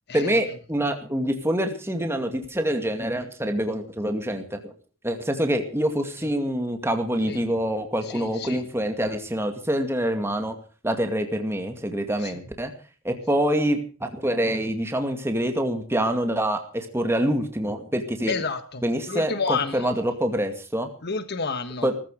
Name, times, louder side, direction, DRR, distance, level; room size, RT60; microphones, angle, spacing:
voice 1, 0.1-4.7 5.0-10.6 10.8-12.7 13.0-18.3 18.8-20.9 21.8-21.9, right 1 dB, 10° right, 5 dB, 2.2 m, -26 dB
voice 2, 8.1-8.6 12.2-12.3 18.3-18.8 19.1-19.9 21.0-21.9, left 4 dB, 50° left, 10 dB, 1.3 m, -29 dB
17.5 x 15.0 x 4.9 m, 0.37 s
head